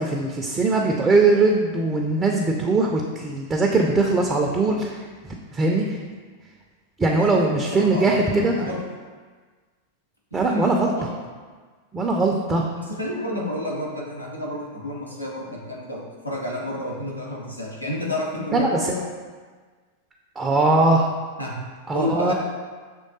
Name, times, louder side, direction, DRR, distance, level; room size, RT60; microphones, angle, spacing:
voice 1, 0.0-6.0 7.0-8.7 10.3-10.9 11.9-12.7 18.5-18.9 20.4-21.1 21.9-22.3, right 3 dB, 15° right, 0 dB, 0.4 m, -21 dB
voice 2, 7.2-8.8 10.5-11.1 12.8-19.0 21.4-21.6 21.9-22.3, left 1 dB, 90° left, -4 dB, 0.8 m, -30 dB
6.1 x 3.2 x 2.7 m, 1.5 s
figure-of-eight pair, 90°, 0 cm